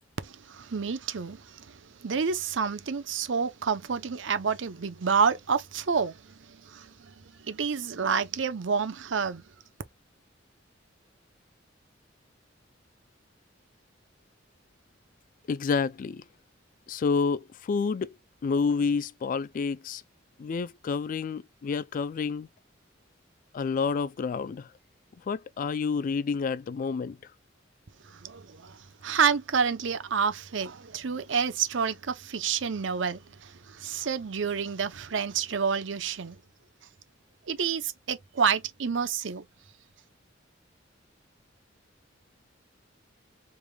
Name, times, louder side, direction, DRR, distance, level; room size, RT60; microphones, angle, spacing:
voice 1, 0.2-1.4 2.0-6.1 6.7-6.9 7.4-9.4 28.2-28.8 29.0-36.4 37.5-39.4, right 6 dB, 70° right, 0.6 m, -28 dB
voice 2, 15.5-16.2 16.9-18.2 18.4-20.0 20.4-22.5 23.5-24.7 25.3-27.2, left 5 dB, 45° left, 0.3 m, -29 dB
4.9 x 3.4 x 2.2 m
head